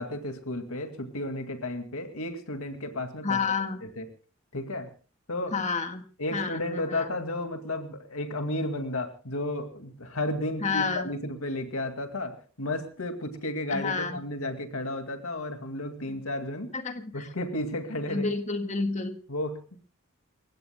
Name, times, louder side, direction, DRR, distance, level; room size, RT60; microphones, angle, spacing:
voice 1, 0.0-3.4 3.8-4.0 4.5-4.9 5.3-5.6 6.2-16.7 17.1-18.3 19.3-19.7, left 1 dB, 80° left, 7 dB, 2.2 m, -33 dB
voice 2, 3.2-3.8 5.5-6.0 6.3-7.1 10.6-11.1 13.7-14.2 16.1-16.2 16.7-17.3 18.1-19.2, left 4 dB, 30° left, 7 dB, 1.7 m, -30 dB
29.0 x 16.0 x 2.3 m, 0.38 s
head